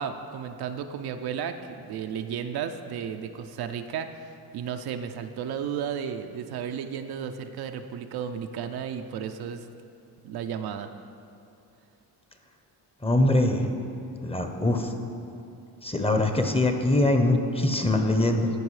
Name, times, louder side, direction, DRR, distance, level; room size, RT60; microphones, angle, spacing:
voice 1, 0.0-4.1 4.5-9.7 10.2-10.9, right 8 dB, 65° right, 7 dB, 0.5 m, -33 dB
voice 2, 13.0-13.7 14.2-14.9 15.8-18.5, left 1 dB, 15° left, 5 dB, 0.8 m, -23 dB
13.5 x 5.2 x 3.2 m, 2.6 s
supercardioid pair, 70°, 42 cm